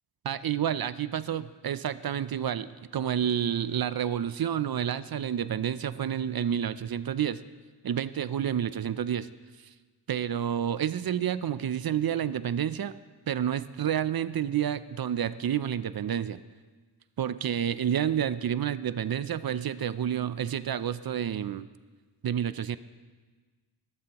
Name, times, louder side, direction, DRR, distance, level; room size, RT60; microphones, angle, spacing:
voice 1, 0.2-2.7 2.9-7.4 7.8-9.3 10.1-12.9 13.3-16.4 17.2-21.7 22.2-22.8, right 9 dB, 60° right, 15 dB, 0.5 m, -29 dB
22.0 x 11.0 x 3.0 m, 1.4 s
wide cardioid pair, 70°, 42 cm